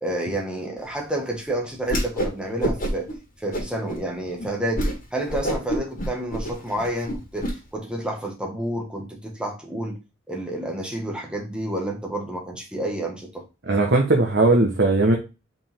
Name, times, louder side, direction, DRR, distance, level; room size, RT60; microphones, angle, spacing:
voice 1, 0.0-3.1 3.4-10.0 10.3-13.4, right 1 dB, 5° right, 0 dB, 1.7 m, -29 dB
Whoosh swoosh swish, 1.8-2.3 2.6-3.1 3.5-4.0 4.4-4.5 4.7-4.9 5.3-7.5, right 1 dB, 40° left, 2.7 m, -26 dB
voice 2, 13.7-15.2, right 2 dB, 60° right, 1 dB, 1.3 m, -18 dB
5.5 x 5.2 x 3.6 m, 0.28 s
head